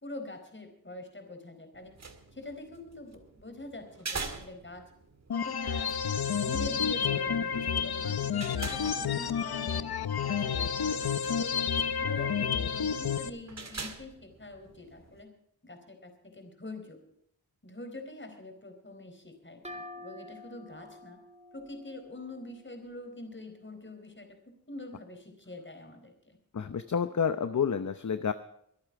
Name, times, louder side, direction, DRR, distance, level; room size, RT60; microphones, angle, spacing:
voice 1, 0.0-1.9 2.3-4.8 5.3-6.0 6.3-9.9 10.2-11.0 11.4-11.6 12.0-15.3 15.6-17.0 17.6-21.2 21.5-24.3 24.7-26.4, left 2 dB, 30° left, 5 dB, 4.3 m, -44 dB
sound 1, 1.7-15.2, right 4 dB, 45° right, 2.0 m, -46 dB
sound 2, 5.3-13.3, left 7 dB, 90° left, 0.9 m, -30 dB
sound 3, 19.6-23.2, left 1 dB, 20° right, 2.4 m, -48 dB
voice 2, 26.5-28.3, left 7 dB, 55° left, 11 dB, 0.8 m, -29 dB
24.0 x 8.7 x 4.8 m, 0.72 s
wide cardioid pair, 75°, 36 cm